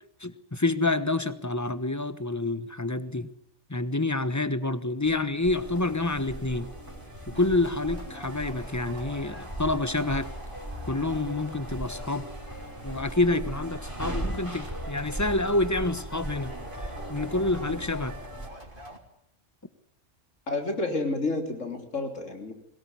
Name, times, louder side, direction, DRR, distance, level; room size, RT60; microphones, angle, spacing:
voice 1, 0.2-3.3 3.7-6.7 7.3-10.3 10.9-12.3 12.8-16.5 16.8-18.1, left 2 dB, 15° left, 13 dB, 1.1 m, -28 dB
sound 1, 5.0-19.0, right 1 dB, 45° right, 3.5 m, -47 dB
sound 2, 5.4-18.5, right 1 dB, 15° right, 5.2 m, -38 dB
voice 2, 20.5-22.5, left 2 dB, 80° left, 5 dB, 3.8 m, -30 dB
22.0 x 18.0 x 9.7 m, 0.74 s
omnidirectional pair, 1.3 m